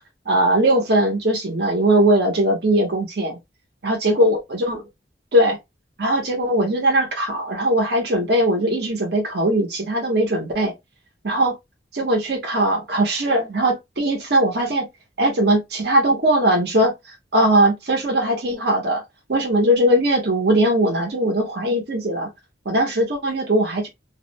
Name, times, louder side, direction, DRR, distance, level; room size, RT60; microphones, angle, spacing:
voice 1, 0.3-3.4 3.8-4.8 5.3-5.6 6.0-10.7 11.2-11.5 11.9-14.9 15.2-16.9 17.3-19.0 19.3-22.3 22.6-23.9, right 1 dB, 65° right, 0.8 m, -20 dB
2.3 x 2.1 x 2.8 m
head